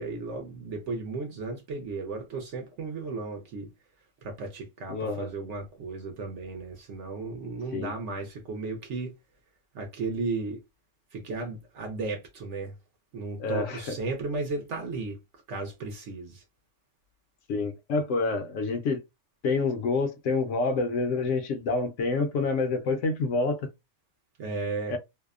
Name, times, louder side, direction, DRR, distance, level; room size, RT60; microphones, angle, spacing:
voice 1, 0.0-3.7 4.2-9.1 9.7-10.6 11.1-12.7 13.1-15.2 15.5-16.4 24.4-25.0, right 3 dB, 65° right, 0.8 m, -34 dB
voice 2, 4.9-5.3 7.7-7.9 13.4-14.0 17.5-19.0 19.4-23.7 24.9-25.0, left 3 dB, 70° left, 0.8 m, -27 dB
2.7 x 2.0 x 2.3 m
omnidirectional pair, 1.5 m